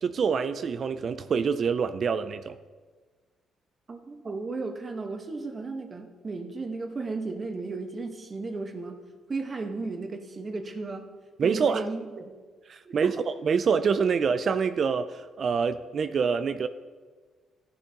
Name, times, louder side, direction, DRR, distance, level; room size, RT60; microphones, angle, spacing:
voice 1, 0.0-2.6 11.4-11.9 12.7-16.7, right 6 dB, 50° right, 0.4 m, -26 dB
voice 2, 3.9-9.0 9.3-11.1 11.4-12.3 12.8-13.1, right 3 dB, 35° right, 1.3 m, -35 dB
14.5 x 10.5 x 2.9 m
cardioid pair, 90°, 0 cm